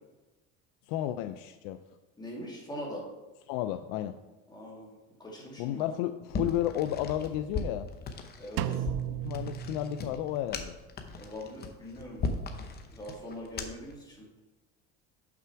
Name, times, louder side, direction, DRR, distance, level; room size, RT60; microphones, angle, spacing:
voice 1, 0.9-1.8 3.5-4.2 5.6-7.9 9.2-10.7, left 12 dB, 80° left, 9 dB, 0.5 m, -32 dB
voice 2, 2.2-3.0 4.5-5.9 8.4-8.9 11.2-12.2 12.6-14.3, equal, 15° left, -3 dB, 2.3 m, -42 dB
sound 1, 6.3-14.0, left 4 dB, 30° left, 0.8 m, -38 dB
Drum, 8.6-10.5, right 11 dB, 85° right, 0.5 m, -35 dB
6.9 x 6.0 x 4.5 m, 1.1 s
cardioid pair, 130°, 32 cm